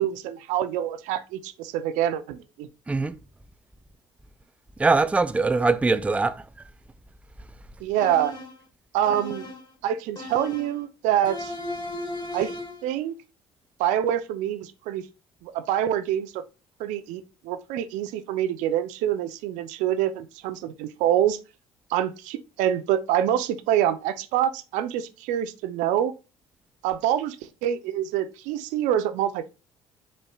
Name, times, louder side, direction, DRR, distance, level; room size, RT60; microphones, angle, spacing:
voice 1, 0.0-2.7 7.8-8.4 8.9-9.5 9.8-11.5 12.3-12.5 12.8-13.2 13.8-15.1 15.4-16.4 16.8-21.4 21.9-26.1 26.8-29.5, right 11 dB, 75° right, 0.6 m, -26 dB
voice 2, 4.8-6.3, right 3 dB, 10° right, 0.4 m, -22 dB
sound 1, 8.0-8.6 9.1-9.7 10.2-10.8 11.3-12.9, left 1 dB, 35° left, 2.0 m, -36 dB
5.1 x 4.4 x 2.3 m
hypercardioid pair, 65°, 13 cm